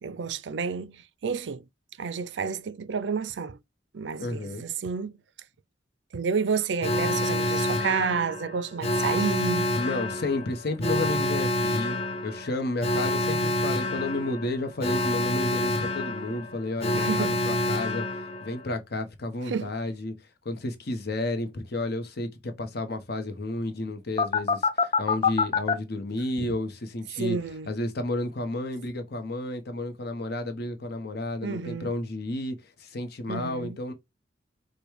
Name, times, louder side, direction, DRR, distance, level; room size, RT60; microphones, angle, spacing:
voice 1, 0.0-1.0 1.2-1.6 2.0-3.6 3.9-5.1 6.1-9.7 16.9-17.4 19.5-19.7 26.4-26.5 27.2-27.7 31.4-31.9 33.3-33.8, right 5 dB, 70° right, 0.4 m, -30 dB
voice 2, 4.2-4.7 9.8-18.0 18.4-20.1 20.4-27.4 27.7-33.9, left 2 dB, 60° left, 1.0 m, -32 dB
Alarm, 6.8-18.7 24.2-25.7, left 2 dB, 35° left, 0.6 m, -27 dB
5.0 x 2.2 x 4.6 m
head